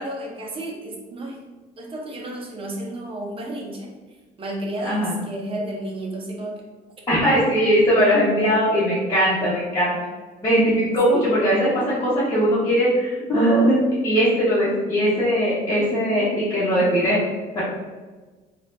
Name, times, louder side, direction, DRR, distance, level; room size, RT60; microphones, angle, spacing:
voice 1, 0.0-1.4 1.8-3.9 4.4-6.5 10.9-11.0, right 1 dB, 30° right, -1 dB, 0.8 m, -32 dB
voice 2, 4.8-5.1 7.1-9.9 10.4-13.8 14.0-17.2 17.5-17.6, equal, 20° left, -12 dB, 1.2 m, -20 dB
4.1 x 2.5 x 2.6 m, 1.3 s
cardioid pair, 110°, 17 cm